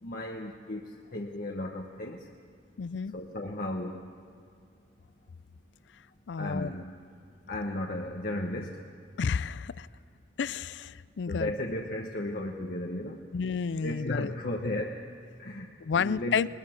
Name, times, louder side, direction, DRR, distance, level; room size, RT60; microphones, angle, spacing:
voice 1, 0.0-2.3 3.1-4.0 6.4-6.9 7.5-8.8 11.3-13.2 13.8-15.0 15.4-15.7 15.9-16.4, left 1 dB, 55° left, 0 dB, 1.1 m, -35 dB
voice 2, 2.8-3.1 6.3-6.7 9.2-9.9 10.4-11.5 13.3-14.4 15.8-16.5, left 6 dB, 75° left, 18 dB, 0.4 m, -30 dB
20.5 x 20.5 x 6.4 m, 2.4 s
head